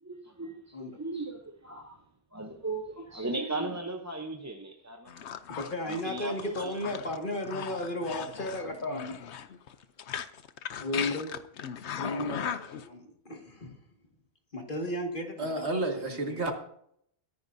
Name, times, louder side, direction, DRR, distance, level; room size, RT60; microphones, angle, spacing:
voice 1, 0.0-5.1 5.8-6.9, right 2 dB, 15° right, 3 dB, 0.8 m, -37 dB
sound 1, 5.1-12.9, left 8 dB, 85° left, 1.0 m, -38 dB
voice 2, 5.5-9.2 10.8-11.3 12.0-13.7 14.5-15.7 16.0-16.4, left 1 dB, 50° left, 2 dB, 2.2 m, -34 dB
voice 3, 15.4-16.5, right 2 dB, 80° right, 3 dB, 2.3 m, -30 dB
22.5 x 11.0 x 2.7 m, 0.68 s
omnidirectional pair, 1.1 m